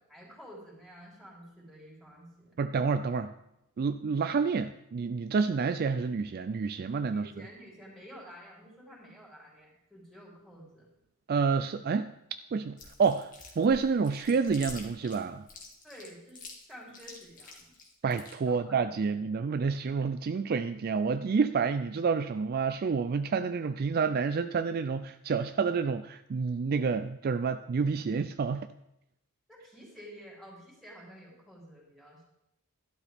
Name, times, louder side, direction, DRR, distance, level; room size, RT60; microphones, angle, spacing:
voice 1, 0.1-2.6 7.1-10.9 15.8-17.7 18.5-19.2 29.5-32.2, equal, ahead, -4 dB, 3.6 m, -50 dB
voice 2, 2.6-3.3 3.8-7.3 11.3-12.1 12.5-13.3 13.6-15.4 18.0-28.7, right 5 dB, 45° right, 10 dB, 0.3 m, -29 dB
Chewing mastication, 12.8-18.3, left 3 dB, 40° left, 2.0 m, -47 dB
12.0 x 11.5 x 3.5 m, 0.85 s
head